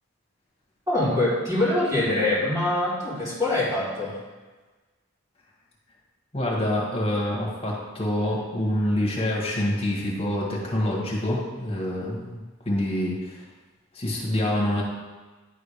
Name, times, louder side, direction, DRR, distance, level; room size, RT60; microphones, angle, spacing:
voice 1, 0.9-4.2, left 1 dB, 15° right, -9 dB, 2.4 m, -24 dB
voice 2, 6.3-12.4 12.7-13.4 13.9-14.8, left 1 dB, 25° left, -4 dB, 1.8 m, -26 dB
10.5 x 3.9 x 5.0 m, 1.3 s
head